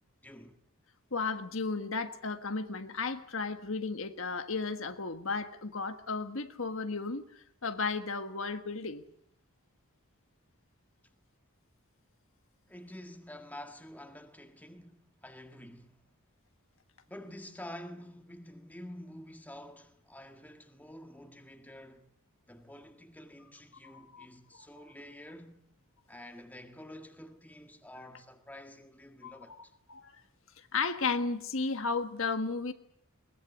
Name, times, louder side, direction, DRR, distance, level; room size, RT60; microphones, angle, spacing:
voice 1, 0.2-0.5 12.7-16.0 17.1-22.1 22.5-25.6 26.1-29.7, left 1 dB, 10° left, 1.7 m, -48 dB
voice 2, 1.1-9.0 23.8-24.3 24.5-24.7 29.2-29.3 29.9-30.1 30.7-32.7, left 4 dB, 65° left, 1.5 m, -34 dB
22.0 x 20.0 x 8.3 m
head